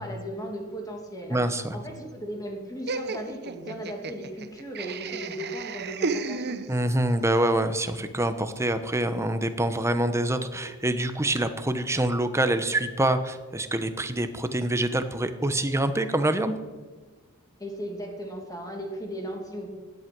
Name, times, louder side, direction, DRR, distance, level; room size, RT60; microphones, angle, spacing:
voice 1, 0.0-1.4 1.7-6.6 17.6-19.7, equal, 15° left, 1 dB, 2.7 m, -36 dB
voice 2, 1.3-1.8 6.7-16.6, right 1 dB, 15° right, 9 dB, 1.0 m, -26 dB
Laughter, 2.9-7.1, right 4 dB, 50° right, 0.8 m, -33 dB
16.5 x 11.0 x 6.1 m, 1.4 s
head